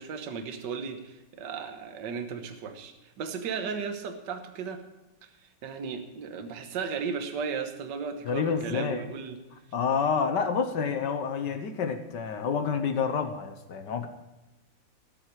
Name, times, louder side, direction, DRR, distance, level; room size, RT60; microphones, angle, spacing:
voice 1, 0.0-4.8 5.2-5.3 5.6-9.4, right 6 dB, 65° right, 7 dB, 1.7 m, -35 dB
voice 2, 8.2-9.0 9.7-14.1, left 6 dB, 65° left, 7 dB, 1.5 m, -28 dB
19.0 x 7.8 x 4.7 m, 1.0 s
omnidirectional pair, 2.2 m